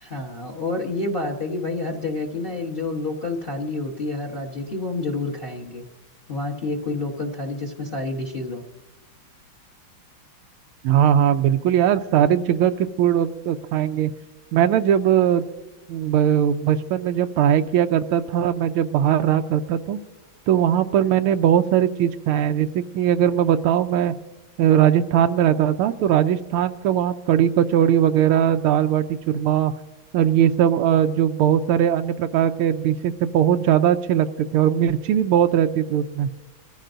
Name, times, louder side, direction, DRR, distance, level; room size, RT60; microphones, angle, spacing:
voice 1, 0.0-5.8 6.3-8.6, left 2 dB, 30° left, 1 dB, 1.2 m, -28 dB
voice 2, 10.8-14.1 14.5-15.5 15.9-20.0 20.5-24.1 24.6-29.7 30.1-36.3, right 10 dB, 90° right, 7 dB, 1.5 m, -20 dB
23.0 x 14.5 x 2.6 m, 1.1 s
omnidirectional pair, 2.3 m